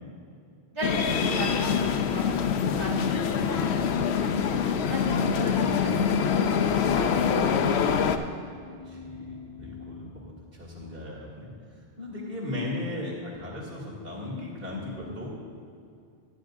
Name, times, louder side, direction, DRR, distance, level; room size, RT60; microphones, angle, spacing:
voice 1, 0.7-1.8 2.1-6.0 6.4-8.2, right 1 dB, 25° right, -6 dB, 1.9 m, -37 dB
sound 1, 0.8-8.2, left 7 dB, 80° left, 0.8 m, -25 dB
sound 2, 4.9-10.1, left 7 dB, 45° left, 0.7 m, -45 dB
voice 2, 8.8-15.3, left 2 dB, 60° right, -6 dB, 2.7 m, -37 dB
14.0 x 10.0 x 2.6 m, 2.4 s
omnidirectional pair, 1.1 m